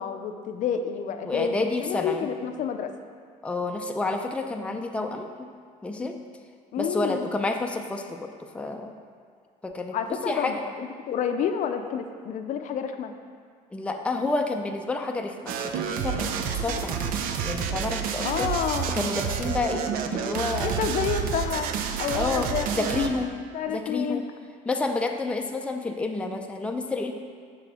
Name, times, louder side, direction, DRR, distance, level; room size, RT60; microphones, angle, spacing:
voice 1, 0.0-2.9 6.7-7.3 9.9-13.2 18.2-19.1 20.6-21.7 22.0-23.1 23.5-24.2, left 7 dB, 55° left, 7 dB, 0.5 m, -29 dB
voice 2, 1.2-2.3 3.4-5.5 5.8-6.2 6.8-8.9 9.6-10.6 13.7-18.5 18.9-20.8 22.1-23.3 23.7-24.2 24.7-27.1, left 3 dB, 10° left, 3 dB, 0.4 m, -30 dB
sound 1, 15.5-23.3, right 7 dB, 75° right, 0.5 m, -29 dB
6.6 x 3.8 x 6.2 m, 2.1 s
cardioid pair, 110°, 15 cm